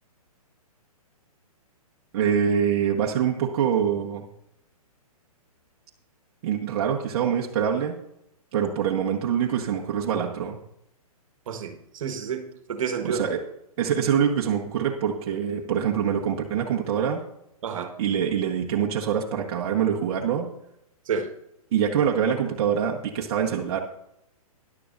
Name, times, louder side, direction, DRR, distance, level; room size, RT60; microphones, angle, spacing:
voice 1, 2.1-4.3 6.4-8.0 8.5-10.6 13.0-13.4 13.8-17.2 18.0-20.5 21.7-23.8, right 8 dB, 45° right, 0 dB, 1.3 m, -24 dB
voice 2, 11.5-12.4 12.7-13.2 17.6-17.9 21.1-21.3, right 6 dB, 60° right, 6 dB, 1.5 m, -29 dB
13.5 x 11.0 x 2.6 m, 0.79 s
hypercardioid pair, 135°, 19 cm